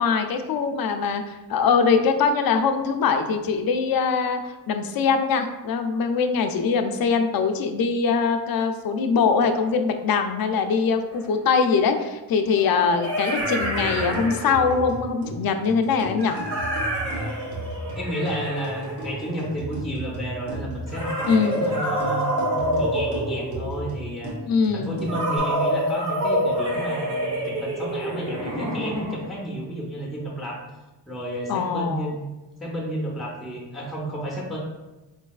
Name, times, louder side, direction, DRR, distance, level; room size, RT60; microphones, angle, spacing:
voice 1, 0.0-16.4 21.3-21.7 24.5-25.0 31.5-32.1, left 5 dB, 60° left, 7 dB, 0.5 m, -22 dB
sound 1, 11.1-11.2 12.6-14.9 16.2-19.7 20.9-23.9 25.1-29.4, equal, 70° right, 1.2 m, -27 dB
sound 2, 13.4-25.4, right 1 dB, 45° right, 1.1 m, -35 dB
voice 2, 17.0-17.4 17.9-24.3 24.7-30.6 31.1-32.2 32.6-34.6, equal, ahead, -2 dB, 0.7 m, -32 dB
3.9 x 3.2 x 2.3 m, 1.1 s
cardioid pair, 90°, 42 cm